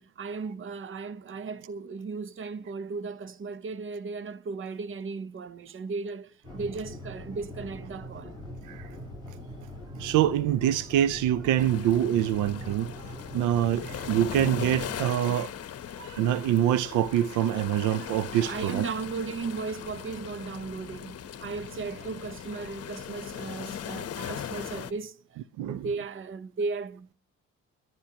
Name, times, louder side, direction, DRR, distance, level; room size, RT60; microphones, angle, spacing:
voice 1, 0.0-8.4 17.8-17.9 18.3-27.1, right 4 dB, 40° right, 0.9 m, -36 dB
sound 1, 6.4-15.1, equal, 15° right, 7.1 m, -42 dB
voice 2, 10.0-15.5 16.0-18.9 24.2-24.3 25.6-25.9, right 11 dB, 90° right, 0.5 m, -25 dB
sound 2, 11.6-24.9, left 9 dB, 55° left, 0.9 m, -39 dB
29.0 x 10.5 x 2.9 m
cardioid pair, 90°, 30 cm